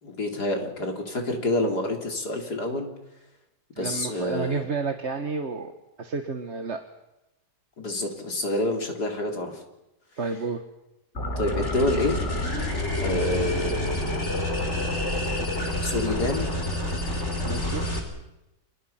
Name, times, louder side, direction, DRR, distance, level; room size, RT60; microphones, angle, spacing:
voice 1, 0.0-2.9 3.8-4.7 7.8-9.6 11.4-12.2 13.0-13.8 15.8-16.5, left 2 dB, 75° left, 3 dB, 4.4 m, -27 dB
voice 2, 3.7-5.7 6.0-6.8 10.2-10.6 17.4-17.8, right 4 dB, 45° right, 6 dB, 1.7 m, -30 dB
sound 1, 11.1-18.0, left 1 dB, 40° left, 5.4 m, -28 dB
30.0 x 28.0 x 5.9 m, 0.92 s
omnidirectional pair, 1.7 m